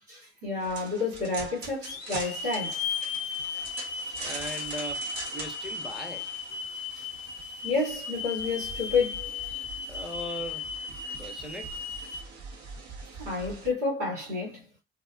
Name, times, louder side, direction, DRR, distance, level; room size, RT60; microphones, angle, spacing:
voice 1, 0.1-3.1 6.9-7.1 7.6-9.3 13.2-14.6, left 4 dB, 80° right, 1.5 m, -30 dB
sound 1, 0.6-13.7, right 3 dB, 50° right, 0.9 m, -43 dB
Hiss / Alarm, 0.8-0.9 1.8-12.2, left 5 dB, 85° left, 0.5 m, -36 dB
voice 2, 4.2-5.0 5.3-6.3 9.9-10.6 11.2-11.7, equal, ahead, 0.8 m, -38 dB
2.6 x 2.2 x 2.2 m
figure-of-eight pair, 50°, 35 cm